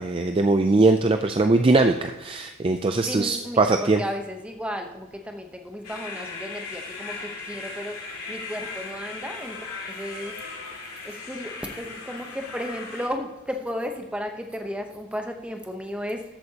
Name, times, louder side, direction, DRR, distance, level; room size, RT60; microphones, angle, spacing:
voice 1, 0.0-4.0, right 3 dB, 25° right, 6 dB, 0.4 m, -21 dB
voice 2, 3.0-8.0 8.3-10.4 11.0-16.2, equal, 5° right, 4 dB, 0.9 m, -34 dB
sound 1, 5.8-13.1, left 3 dB, 85° left, 2.3 m, -37 dB
13.0 x 8.5 x 2.9 m, 1.1 s
head